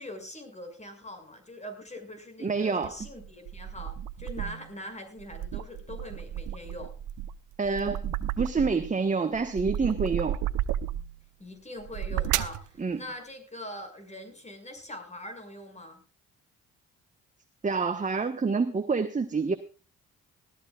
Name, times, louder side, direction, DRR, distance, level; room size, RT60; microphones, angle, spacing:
voice 1, 0.0-6.9 11.4-16.0, left 1 dB, 20° left, 7 dB, 6.3 m, -42 dB
voice 2, 2.4-2.9 7.6-8.1 8.4-10.4 12.8-13.0 17.6-19.5, right 4 dB, 25° right, 7 dB, 1.3 m, -27 dB
sound 1, 2.8-4.7 5.2-8.9 9.3-11.2 11.8-12.6, right 11 dB, 90° right, 0.9 m, -33 dB
20.0 x 14.5 x 2.4 m, 0.34 s
cardioid pair, 90°, 30 cm